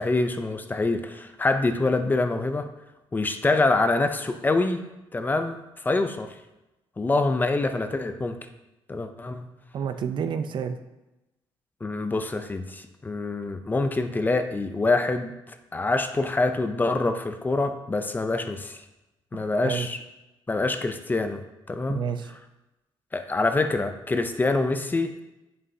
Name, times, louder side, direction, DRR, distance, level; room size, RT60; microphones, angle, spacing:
voice 1, 0.0-2.7 3.1-4.8 5.1-6.3 7.0-8.4 8.9-9.5 11.8-18.8 19.3-20.0 20.5-21.4 21.7-22.0 23.1-25.2, left 2 dB, 20° left, 7 dB, 0.5 m, -25 dB
voice 2, 9.7-10.8 19.3-19.9 21.9-22.3, right 7 dB, 55° right, 9 dB, 0.5 m, -29 dB
9.8 x 5.4 x 2.8 m, 0.98 s
cardioid pair, 115°, 10 cm